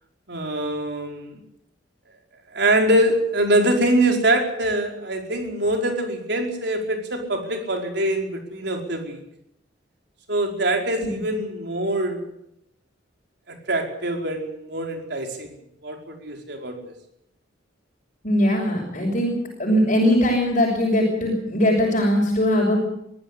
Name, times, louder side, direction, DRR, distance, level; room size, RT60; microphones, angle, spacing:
voice 1, 0.3-1.4 2.5-9.2 10.3-12.2 13.5-15.5 15.8-16.8, right 1 dB, 65° right, 2 dB, 5.0 m, -23 dB
voice 2, 18.2-19.3 19.6-22.8, equal, 45° left, -3 dB, 6.3 m, -20 dB
23.5 x 15.0 x 8.3 m, 0.76 s
head